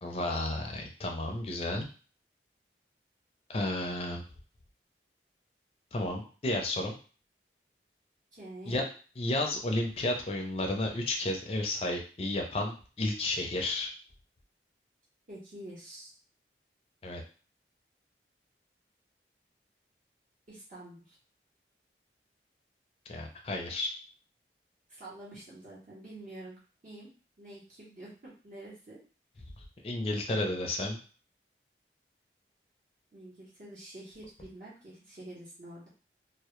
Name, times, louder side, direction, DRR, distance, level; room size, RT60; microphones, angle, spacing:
voice 1, 0.0-1.9 3.5-4.2 5.9-6.9 8.7-8.8 9.2-13.9 17.0-17.2 23.1-23.9 29.8-31.0, left 1 dB, 35° left, 2 dB, 0.4 m, -32 dB
voice 2, 8.3-8.9 15.3-16.1 20.5-21.2 24.9-26.6 26.8-27.1 27.4-29.0 33.1-35.9, right 1 dB, 45° right, -7 dB, 0.7 m, -47 dB
2.1 x 2.0 x 2.9 m, 0.38 s
head